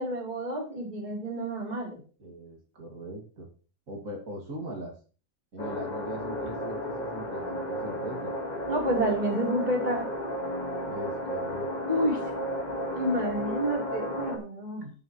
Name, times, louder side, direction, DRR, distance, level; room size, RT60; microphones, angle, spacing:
voice 1, 0.0-2.0 8.7-10.1 11.9-12.2 13.0-14.9, right 1 dB, 35° right, -2 dB, 3.7 m, -29 dB
voice 2, 2.2-3.5 3.9-4.9 5.5-8.3 10.9-11.7, right 1 dB, 80° right, 0 dB, 2.6 m, -40 dB
sound 1, 5.6-14.4, equal, 30° left, 1.7 m, -33 dB
16.5 x 6.5 x 3.1 m, 0.37 s
omnidirectional pair, 1.4 m